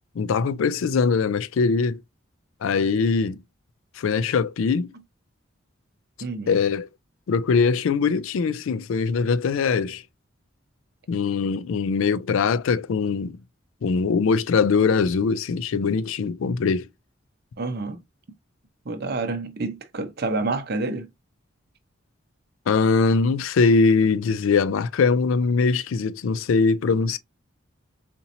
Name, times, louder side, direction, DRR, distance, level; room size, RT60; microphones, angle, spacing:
voice 1, 0.2-2.0 2.6-3.4 4.0-4.9 6.5-6.9 7.3-10.0 11.1-13.4 13.8-16.9 22.7-27.2, left 5 dB, 75° left, 0.4 m, -22 dB
voice 2, 6.2-6.6 17.6-18.0 18.8-21.1, right 3 dB, 50° right, 0.6 m, -28 dB
4.3 x 2.8 x 2.6 m
head